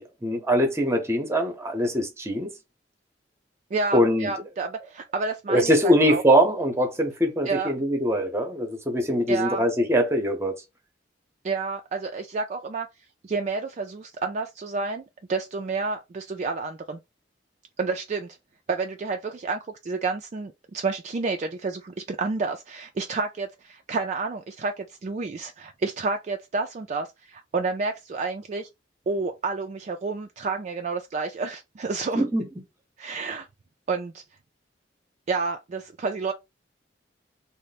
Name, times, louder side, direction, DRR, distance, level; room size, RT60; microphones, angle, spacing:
voice 1, 0.0-2.5 3.9-4.3 5.5-10.5 32.2-32.5, equal, 15° right, 0.8 m, -22 dB
voice 2, 3.7-6.2 7.5-7.7 9.3-9.6 11.4-12.9 13.2-15.0 15.3-17.0 17.8-18.4 18.7-28.7 29.1-32.2 33.0-33.5 33.9-34.2 35.3-36.3, right 4 dB, 40° right, 0.4 m, -30 dB
3.2 x 2.0 x 4.0 m
head